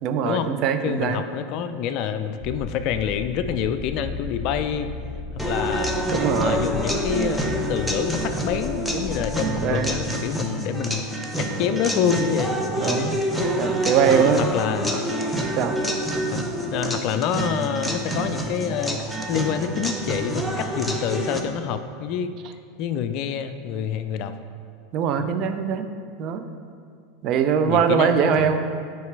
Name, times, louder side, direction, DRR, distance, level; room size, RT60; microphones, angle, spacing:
voice 1, 0.0-1.2 6.1-6.6 9.4-9.9 12.8-13.2 13.6-14.5 15.6-15.7 24.9-25.9 26.2-26.4 27.2-28.6, right 7 dB, 50° right, 8 dB, 0.5 m, -22 dB
voice 2, 0.8-4.9 5.4-6.0 6.4-11.1 11.4-13.3 14.0-15.0 16.3-16.4 16.7-19.0 19.3-22.3 22.8-24.3 25.2-25.6 27.6-28.6, left 8 dB, 55° left, 10 dB, 0.4 m, -27 dB
sound 1, 2.4-10.0, left 4 dB, 25° left, 1.0 m, -35 dB
sound 2, 5.4-21.4, right 1 dB, ahead, 0.8 m, -27 dB
9.4 x 4.7 x 3.3 m, 2.3 s
hypercardioid pair, 85°, 0 cm